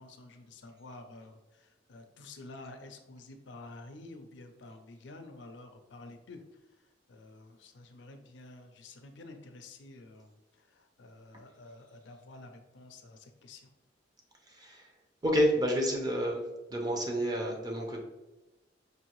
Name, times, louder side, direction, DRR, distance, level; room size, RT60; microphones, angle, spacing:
voice 1, 0.0-6.4 7.1-13.7, left 2 dB, 80° left, 6 dB, 0.5 m, -50 dB
voice 2, 14.5-14.9 15.2-16.4 16.7-18.0, equal, 20° right, 1 dB, 0.7 m, -29 dB
5.2 x 2.7 x 3.0 m, 1.1 s
head